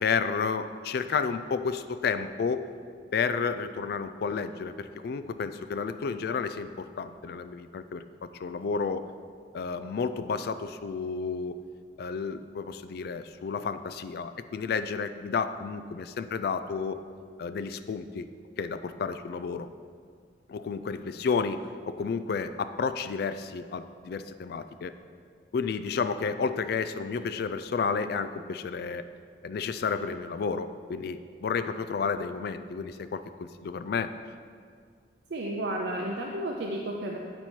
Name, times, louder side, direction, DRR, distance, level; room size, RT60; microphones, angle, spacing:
voice 1, 0.0-2.7 3.1-9.1 9.5-11.6 12.0-17.0 17.4-18.3 18.6-19.7 20.5-24.9 25.5-29.0 29.4-34.1, left 5 dB, 55° left, 11 dB, 0.3 m, -31 dB
voice 2, 35.3-37.2, right 1 dB, 65° right, -1 dB, 0.5 m, -32 dB
9.2 x 4.3 x 4.4 m, 2.1 s
head